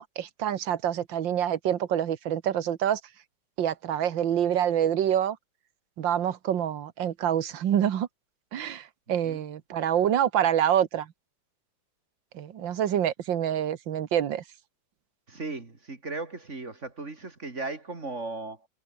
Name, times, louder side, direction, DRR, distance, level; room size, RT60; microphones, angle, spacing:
voice 1, 0.0-3.0 3.6-5.4 6.0-8.1 8.5-11.1 12.3-14.4, right 10 dB, 85° right, 2.0 m, -26 dB
voice 2, 15.3-18.7, right 3 dB, 40° right, 3.1 m, -36 dB
omnidirectional pair, 2.0 m